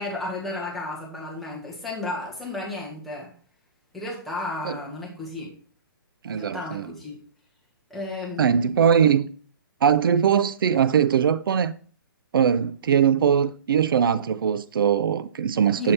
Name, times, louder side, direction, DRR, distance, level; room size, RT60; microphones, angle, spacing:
voice 1, 0.0-3.3 3.9-5.5 6.3-7.2 7.9-8.7 15.7-15.9, left 2 dB, ahead, 1.2 m, -33 dB
voice 2, 6.2-6.9 8.4-9.3 9.8-11.7 12.3-15.9, right 8 dB, 70° right, 0.4 m, -21 dB
7.2 x 3.3 x 4.1 m
hypercardioid pair, 160°, 12 cm